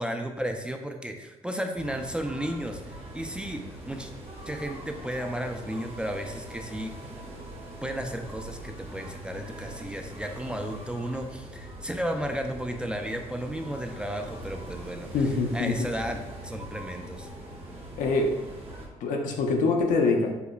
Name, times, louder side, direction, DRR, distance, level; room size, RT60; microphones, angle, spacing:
voice 1, 0.0-4.1 4.5-6.9 7.8-15.1 15.5-16.2 16.4-17.3, equal, 5° right, 4 dB, 0.3 m, -33 dB
sound 1, 1.8-18.9, right 1 dB, 45° right, 1.1 m, -42 dB
voice 2, 15.1-15.8 18.0-18.4 19.0-20.3, left 3 dB, 80° left, 2 dB, 0.6 m, -24 dB
5.4 x 2.1 x 2.3 m, 1.1 s
cardioid pair, 80°, 13 cm